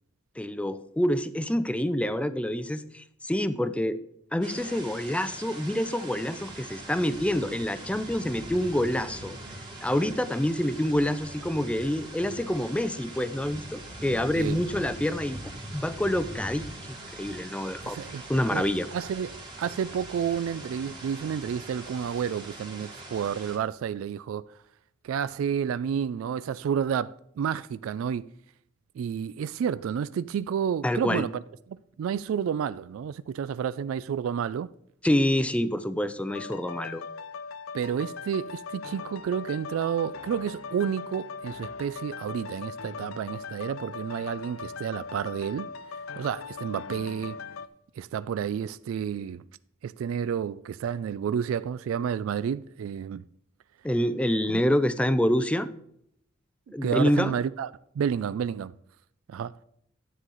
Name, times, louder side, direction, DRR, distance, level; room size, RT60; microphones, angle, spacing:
voice 1, 0.4-4.0 4.3-9.4 9.8-15.4 15.7-18.0 18.3-18.9 30.8-31.3 35.0-37.0 53.8-55.7 56.7-57.3, left 1 dB, 5° left, 0.4 m, -27 dB
sound 1, 4.4-23.6, right 1 dB, 25° right, 2.0 m, -42 dB
voice 2, 17.8-18.2 18.5-18.7 18.9-24.4 25.0-28.2 29.0-31.4 32.0-34.7 37.7-47.4 48.0-49.4 49.8-53.2 54.5-54.6 56.8-57.7 57.9-58.7 59.3-59.6, right 8 dB, 85° right, 0.3 m, -30 dB
sound 2, 36.3-47.7, left 5 dB, 85° left, 0.5 m, -40 dB
10.0 x 7.9 x 3.9 m
head